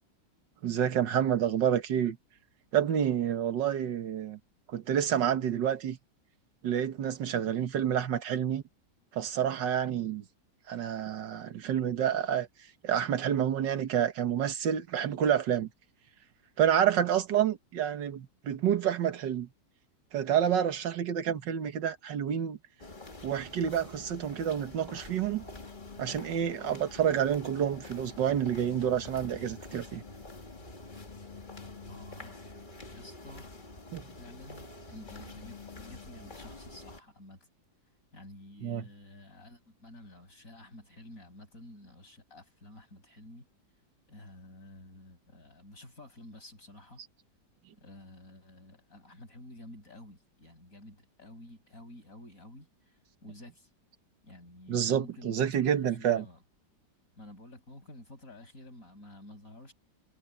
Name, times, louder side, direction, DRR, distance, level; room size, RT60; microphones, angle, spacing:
voice 1, 0.6-2.2 2.7-4.4 4.7-6.0 6.6-8.6 9.1-10.2 10.7-12.5 12.8-15.7 16.6-19.5 20.1-22.6 23.2-25.5 26.0-30.0 33.9-34.1 38.6-38.8 54.7-56.2, right 9 dB, 85° right, 1.9 m, -28 dB
sound 1, 22.8-37.0, left 3 dB, 25° left, 2.2 m, -47 dB
voice 2, 31.9-32.5 32.9-33.5 34.2-37.4 38.1-43.5 44.1-47.0 47.8-53.7 54.2-56.4 57.1-59.7, left 1 dB, 50° left, 6.7 m, -51 dB
omnidirectional pair, 1.9 m